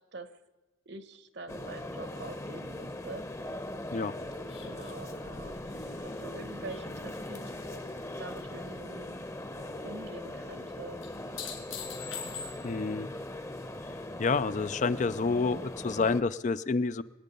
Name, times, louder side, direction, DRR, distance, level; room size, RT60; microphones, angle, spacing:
voice 1, 0.9-3.6 4.6-7.5 8.2-9.2 9.8-11.0, right 3 dB, 55° right, 12 dB, 1.1 m, -45 dB
sound 1, 1.5-16.2, left 1 dB, 15° left, 0.8 m, -40 dB
sound 2, 4.1-8.2 9.5-13.5, right 2 dB, 75° right, 1.7 m, -56 dB
sound 3, 4.5-8.0 8.3-8.9 11.0-12.9 15.5-15.6, left 7 dB, 75° left, 3.7 m, -45 dB
voice 2, 12.6-13.1 14.2-17.0, left 4 dB, 35° left, 14 dB, 0.4 m, -28 dB
25.0 x 9.2 x 5.3 m, 1.2 s
head